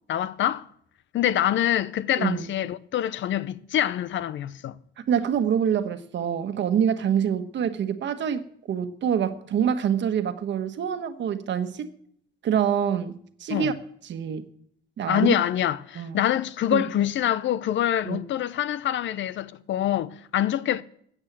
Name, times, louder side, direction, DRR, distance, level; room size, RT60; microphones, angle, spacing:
voice 1, 0.1-0.7 1.1-4.8 13.5-13.7 15.1-20.8, left 11 dB, 70° left, 0.7 m, -25 dB
voice 2, 2.2-2.5 5.0-11.9 12.4-13.7 14.0-14.4 15.0-15.3 15.9-16.2 16.7-16.8 18.0-18.2, right 8 dB, 65° right, 1.3 m, -26 dB
15.0 x 8.8 x 7.5 m
cardioid pair, 90°, 20 cm